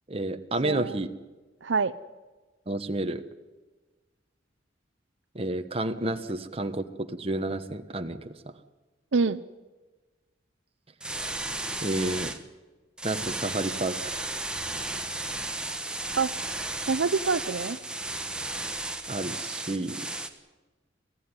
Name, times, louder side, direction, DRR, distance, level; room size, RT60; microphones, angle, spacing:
voice 1, 0.1-1.1 2.7-3.2 5.3-8.3 11.8-12.3 13.0-14.4 19.1-20.1, right 2 dB, 30° right, 7 dB, 1.2 m, -30 dB
voice 2, 0.6-1.0 1.6-1.9 9.1-9.4 16.2-16.3 16.9-17.8, right 4 dB, 80° right, 13 dB, 0.7 m, -26 dB
sound 1, 11.0-12.4 13.0-20.3, right 2 dB, 5° right, 1.3 m, -34 dB
24.0 x 15.5 x 9.8 m, 1.3 s
head